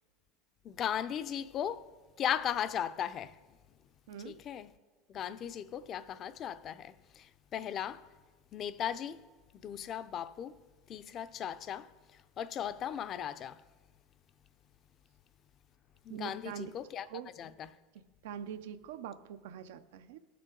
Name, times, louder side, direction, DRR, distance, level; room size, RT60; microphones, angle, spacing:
voice 1, 0.6-1.9 2.2-3.3 4.2-4.7 5.1-8.0 8.5-9.2 9.6-10.5 10.9-11.9 12.4-13.6 16.0-17.1 17.4-17.7, left 9 dB, 40° left, 0.5 m, -37 dB
voice 2, 4.1-4.4 16.1-16.7 17.1-17.3 18.2-20.2, right 8 dB, 80° right, 0.6 m, -43 dB
18.5 x 6.7 x 3.8 m
supercardioid pair, 120°, 0 cm